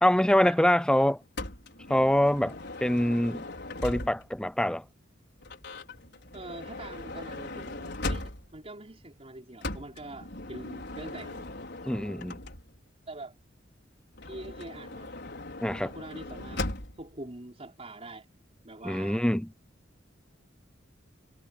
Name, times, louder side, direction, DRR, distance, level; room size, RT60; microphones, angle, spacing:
voice 1, 0.0-1.2 1.9-3.5 3.8-4.8 11.9-12.4 15.6-15.9 18.8-19.5, left 1 dB, 5° left, 0.6 m, -24 dB
Motor vehicle (road) / Sliding door, 1.4-4.4 5.4-8.7 9.6-12.9 14.1-17.1, left 2 dB, 60° left, 5.5 m, -39 dB
voice 2, 6.3-11.5 13.1-13.3 14.2-15.2 15.8-18.3 18.6-19.2, right 2 dB, 30° right, 5.7 m, -44 dB
head